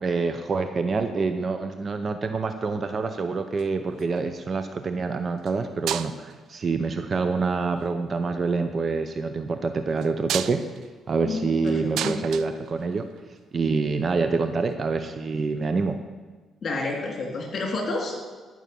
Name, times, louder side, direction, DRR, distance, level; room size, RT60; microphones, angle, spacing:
voice 1, 0.0-10.6 11.1-13.1 13.5-16.0, right 4 dB, 45° right, 8 dB, 0.7 m, -26 dB
sound 1, 3.4-4.2 5.4-5.6 5.9-6.5 7.4-7.9 10.0-13.4 14.7-14.8, right 10 dB, 80° right, 0.4 m, -34 dB
voice 2, 11.6-12.2 16.6-18.2, left 3 dB, 50° left, 0 dB, 3.1 m, -29 dB
13.0 x 6.2 x 7.0 m, 1.4 s
cardioid pair, 90°, 0 cm